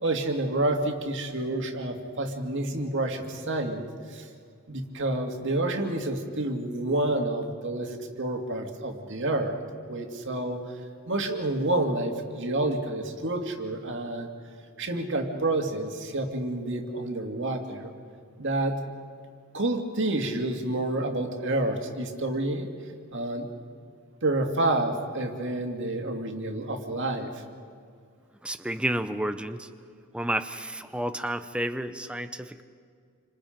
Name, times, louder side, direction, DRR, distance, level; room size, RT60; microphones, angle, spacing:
voice 1, 0.0-4.3 4.7-9.6 9.9-10.6 11.1-14.3 14.8-17.9 18.4-18.8 19.5-22.7 23.1-23.5 24.2-27.3, right 2 dB, 55° right, 4 dB, 2.3 m, -29 dB
voice 2, 28.4-29.7 30.1-32.6, right 1 dB, 5° right, 9 dB, 0.7 m, -31 dB
29.0 x 26.0 x 5.2 m, 2.1 s
head